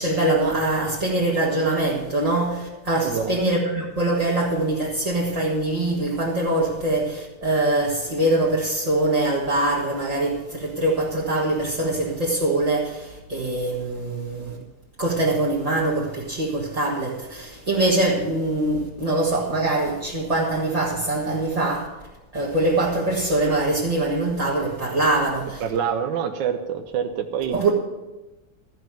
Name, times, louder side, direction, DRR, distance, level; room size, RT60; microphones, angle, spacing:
voice 1, 0.0-14.6 15.0-21.9 22.3-25.6 27.5-27.7, right 2 dB, 20° right, 1.4 m, -23 dB
voice 2, 3.0-3.4 25.6-27.6, right 7 dB, 65° right, 1.3 m, -26 dB
13.5 x 5.4 x 9.0 m
omnidirectional pair, 2.4 m